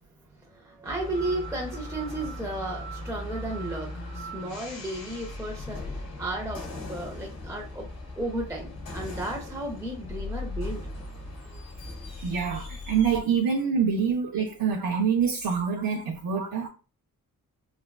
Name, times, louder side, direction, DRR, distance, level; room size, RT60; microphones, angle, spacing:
voice 1, 0.5-7.9 8.2-10.8 11.5-11.6, right 1 dB, 10° right, 0.4 m, -34 dB
sound 1, 0.8-13.2, left 1 dB, 75° left, 1.1 m, -38 dB
voice 2, 12.2-16.7, right 6 dB, 85° right, 0.5 m, -26 dB
3.3 x 2.2 x 2.2 m
wide cardioid pair, 125°, 35 cm